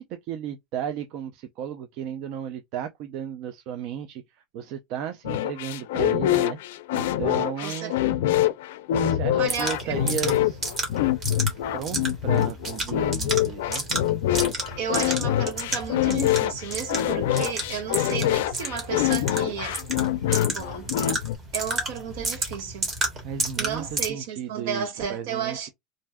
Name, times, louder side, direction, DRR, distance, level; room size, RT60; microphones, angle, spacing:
voice 1, 0.0-6.6 6.9-7.9 8.9-10.6 11.7-13.9 23.2-25.7, right 8 dB, 50° right, 0.4 m, -34 dB
sound 1, 5.2-21.4, left 12 dB, 85° left, 0.3 m, -25 dB
voice 2, 7.6-8.0 9.4-10.0 14.8-19.8 20.5-20.9 21.5-22.9 23.6-25.7, right 7 dB, 70° right, 1.1 m, -33 dB
sound 2, 9.5-24.1, right 2 dB, 25° right, 1.2 m, -32 dB
2.5 x 2.2 x 3.4 m
supercardioid pair, 155°, 0 cm